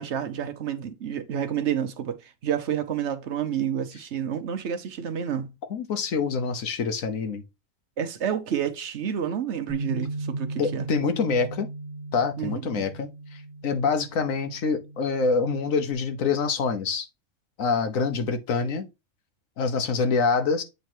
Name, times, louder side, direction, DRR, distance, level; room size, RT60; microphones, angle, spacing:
voice 1, 0.0-5.5 8.0-10.9 12.4-12.9, right 9 dB, 60° right, 1.0 m, -29 dB
voice 2, 5.7-7.4 10.6-11.7 12.1-13.1 13.6-17.1 17.6-18.9 19.6-20.6, left 4 dB, 85° left, 1.4 m, -25 dB
Bass guitar, 9.7-15.9, right 2 dB, 20° right, 1.3 m, -37 dB
8.1 x 3.3 x 4.4 m
omnidirectional pair, 1.4 m